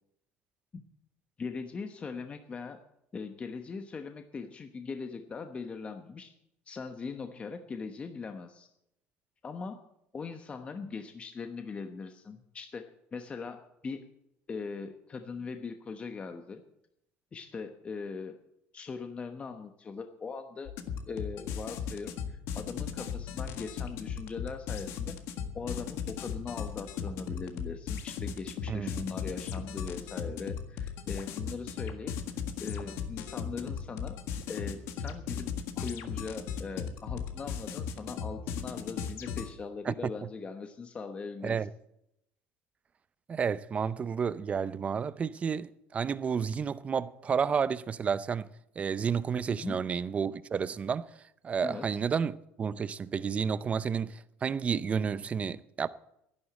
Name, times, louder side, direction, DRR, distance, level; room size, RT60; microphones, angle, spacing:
voice 1, 1.4-2.8 3.1-6.3 6.7-8.7 9.4-9.8 10.1-14.0 14.5-16.6 17.3-18.3 18.7-20.7 21.1-25.2 25.5-32.1 32.6-34.2 34.5-35.5 35.8-41.6 49.5-49.8 51.6-51.9, left 4 dB, 25° left, 1.1 m, -40 dB
sound 1, 20.7-39.5, left 7 dB, 70° left, 1.7 m, -37 dB
voice 2, 28.7-29.0 39.9-40.0 41.4-41.7 43.3-48.5 48.8-51.1 51.4-55.9, right 6 dB, 25° right, 0.6 m, -31 dB
11.5 x 11.0 x 8.7 m
cardioid pair, 130°, 5 cm